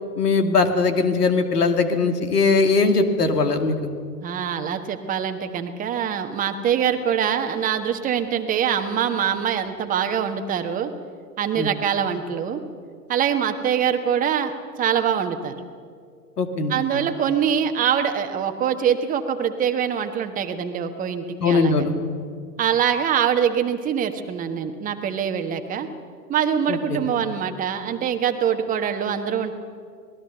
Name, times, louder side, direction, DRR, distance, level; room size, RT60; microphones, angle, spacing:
voice 1, 0.2-3.7 11.6-11.7 16.4-16.8 21.4-21.9 26.7-27.0, left 4 dB, 65° left, 6 dB, 2.6 m, -20 dB
voice 2, 4.2-10.9 11.4-12.6 13.1-15.6 16.7-21.9 22.6-25.9 26.3-29.5, right 8 dB, 15° right, 7 dB, 1.4 m, -24 dB
26.5 x 19.5 x 6.9 m, 2.1 s
figure-of-eight pair, 110°, 49 cm